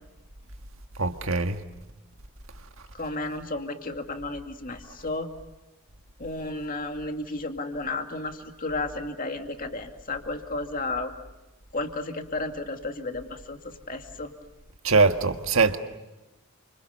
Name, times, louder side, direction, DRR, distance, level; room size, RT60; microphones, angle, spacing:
voice 1, 1.0-1.6 14.8-15.8, right 4 dB, 65° right, 1.7 m, -22 dB
voice 2, 2.9-5.3 6.2-11.1 11.7-14.3, left 2 dB, 40° left, 2.3 m, -33 dB
29.5 x 26.5 x 6.8 m
head